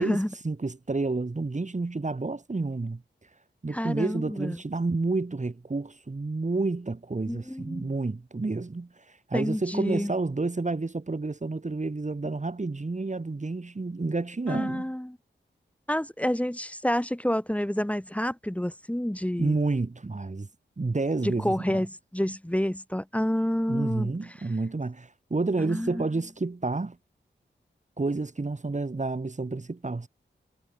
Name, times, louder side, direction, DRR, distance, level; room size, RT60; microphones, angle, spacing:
voice 1, 0.0-3.0 3.6-14.9 19.4-20.5 20.8-21.8 23.7-27.0 28.0-30.1, right 3 dB, 40° right, 3.1 m, -30 dB
voice 2, 3.7-4.6 7.3-7.9 9.3-10.1 14.5-15.2 15.9-19.5 21.2-24.1 25.6-26.0, equal, 5° left, 2.8 m, -29 dB
wide cardioid pair, 75°, 20 cm